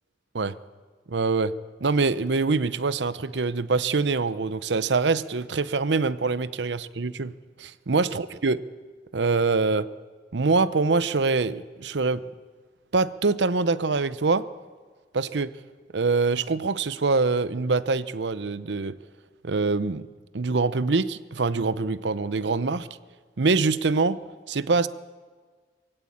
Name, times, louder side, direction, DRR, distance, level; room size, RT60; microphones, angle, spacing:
voice 1, 1.1-1.5 1.8-7.3 7.6-8.6 9.1-9.9 10.3-12.2 12.9-14.5 15.1-15.5 15.9-19.0 19.4-20.1 20.3-22.9 23.4-24.2 24.5-24.9, right 4 dB, 80° right, 16 dB, 0.7 m, -24 dB
22.0 x 16.0 x 8.7 m, 1.5 s
head